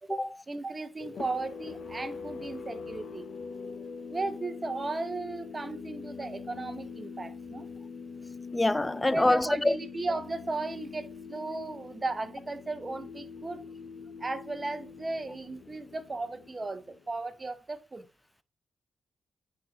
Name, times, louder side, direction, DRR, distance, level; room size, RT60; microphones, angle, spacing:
voice 1, 0.0-3.3 4.1-7.7 9.1-13.6 14.2-18.1, right 3 dB, 30° right, 0.8 m, -36 dB
sound 1, 1.0-17.3, left 5 dB, 70° left, 0.8 m, -43 dB
voice 2, 8.5-9.8, left 1 dB, 15° left, 0.3 m, -25 dB
9.3 x 4.0 x 3.0 m
cardioid pair, 75°, 0 cm